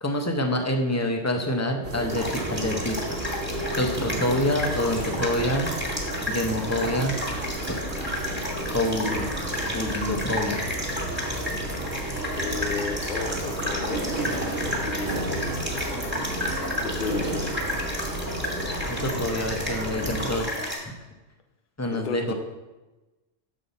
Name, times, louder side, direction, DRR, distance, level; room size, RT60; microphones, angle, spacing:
voice 1, 0.0-3.2 3.7-5.8 6.3-7.2 8.7-9.3 9.6-10.6 18.6-20.4 21.8-22.3, left 1 dB, 20° left, 3 dB, 0.4 m, -27 dB
sound 1, 1.8-20.4, right 1 dB, 85° right, 1.5 m, -32 dB
sound 2, 2.1-20.8, left 1 dB, 10° right, 1.5 m, -32 dB
voice 2, 12.3-14.1 14.4-15.5 16.8-17.6 21.9-22.3, left 4 dB, 50° left, 5 dB, 0.8 m, -33 dB
7.1 x 5.4 x 4.0 m, 1.1 s
omnidirectional pair, 1.3 m